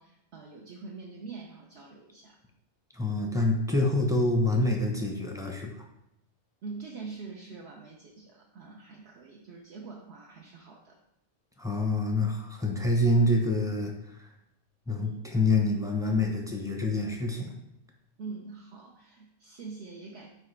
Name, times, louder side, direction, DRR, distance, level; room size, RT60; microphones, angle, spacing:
voice 1, 0.0-2.4 6.6-10.9 14.9-15.2 18.2-20.3, right 4 dB, 65° right, -1 dB, 0.9 m, -44 dB
voice 2, 2.9-5.8 11.6-14.3 14.9-17.5, left 2 dB, 5° right, 1 dB, 0.6 m, -26 dB
6.1 x 4.8 x 3.3 m, 0.83 s
omnidirectional pair, 1.3 m